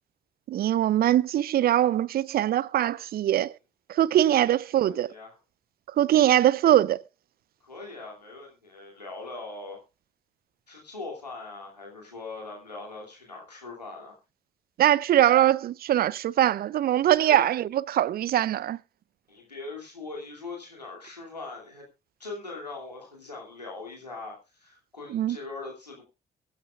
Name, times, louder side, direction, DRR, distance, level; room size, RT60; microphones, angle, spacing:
voice 1, 0.5-3.5 3.9-5.1 6.0-7.0 14.8-18.8 25.1-25.4, right 12 dB, 50° right, 0.5 m, -22 dB
voice 2, 4.1-4.5 4.8-5.4 7.6-9.8 10.7-14.2 17.2-17.5 19.3-21.9 22.2-26.0, left 3 dB, 90° left, 2.7 m, -41 dB
22.5 x 9.9 x 2.4 m
figure-of-eight pair, 40°, 20 cm